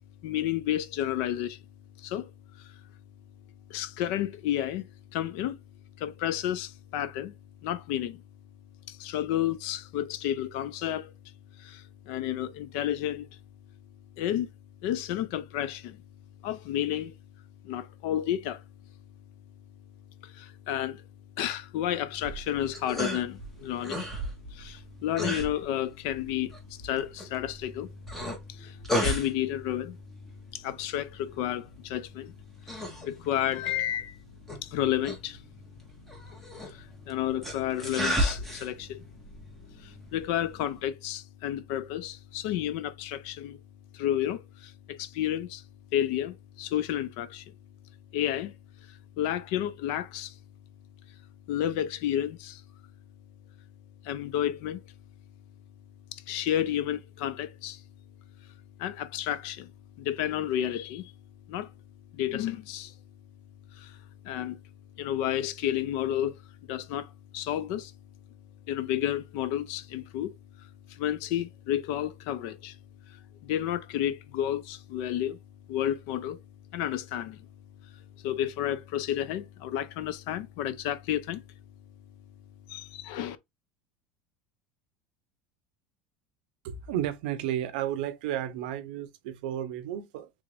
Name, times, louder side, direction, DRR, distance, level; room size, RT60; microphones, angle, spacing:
voice 1, 0.2-1.6 2.0-2.3 2.6-2.7 3.7-5.6 6.0-7.3 7.6-8.2 8.9-11.1 11.6-13.3 14.2-14.5 14.8-16.0 16.4-17.2 17.6-18.6 20.2-21.0 21.4-24.0 24.5-27.9 28.5-30.0 30.5-32.3 32.7-34.2 34.6-35.4 36.6-39.0 39.8-43.6 43.9-45.6 45.9-47.5 48.1-48.6 48.9-50.4 51.5-52.6 54.0-54.8 56.1-57.8 58.8-59.7 60.0-61.1 61.5-61.7 62.1-62.9 63.7-64.0 64.2-64.6 65.0-66.4 66.7-67.9 68.7-70.3 70.6-72.8 73.1-75.4 75.7-76.4 76.7-77.5 78.2-81.4 82.7-83.4, left 11 dB, 55° left, 0.4 m, -31 dB
sound 1, 22.1-40.8, equal, 5° left, 0.8 m, -36 dB
voice 2, 86.6-90.3, right 11 dB, 75° right, 0.6 m, -32 dB
3.4 x 2.5 x 3.2 m
cardioid pair, 175°, 5 cm